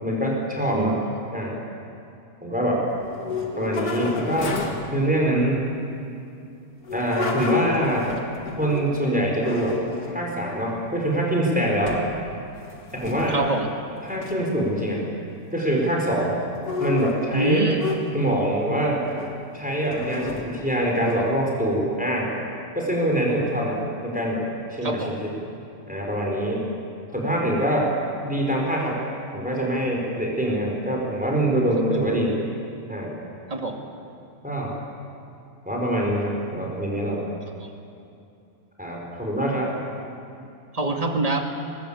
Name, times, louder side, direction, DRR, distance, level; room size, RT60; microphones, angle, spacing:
voice 1, 0.0-1.0 1.3-1.6 2.4-2.8 3.5-4.5 4.9-5.6 6.9-8.1 8.6-9.8 10.1-12.0 12.9-13.4 14.0-15.0 15.5-16.4 16.8-17.7 18.1-19.1 19.5-22.3 22.7-25.3 25.9-26.7 27.1-27.9 28.2-29.0 29.3-32.4 32.9-33.1 34.4-34.7 35.6-37.2 38.8-39.7, right 1 dB, 5° right, -2 dB, 4.5 m, -24 dB
voice 2, 0.7-1.0 13.3-13.7 17.3-17.8 24.8-25.1 33.5-33.8 37.6-37.7 40.7-41.4, right 2 dB, 25° right, 3 dB, 2.2 m, -25 dB
sound 1, 3.0-4.9 6.8-9.0 9.4-10.3 10.9-11.4 11.9-12.2 12.5-13.6 14.1-14.3 16.5-18.4 19.0-19.4 19.9-21.4, left 4 dB, 85° left, 2.5 m, -31 dB
23.5 x 20.0 x 8.7 m, 2.6 s
omnidirectional pair, 1.5 m